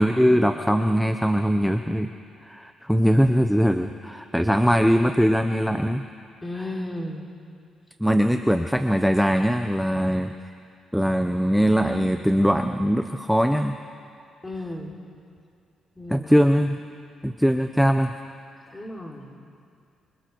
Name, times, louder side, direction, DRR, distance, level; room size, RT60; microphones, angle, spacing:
voice 1, 0.0-2.1 2.4-6.0 8.0-10.3 10.9-13.8 16.1-16.8 17.2-18.1, equal, ahead, 6 dB, 0.8 m, -21 dB
voice 2, 6.4-7.3 14.4-15.0 15.9-16.3 18.7-19.3, left 1 dB, 20° left, 1 dB, 3.4 m, -34 dB
26.0 x 25.5 x 4.7 m, 2.4 s
cardioid pair, 90°, 0 cm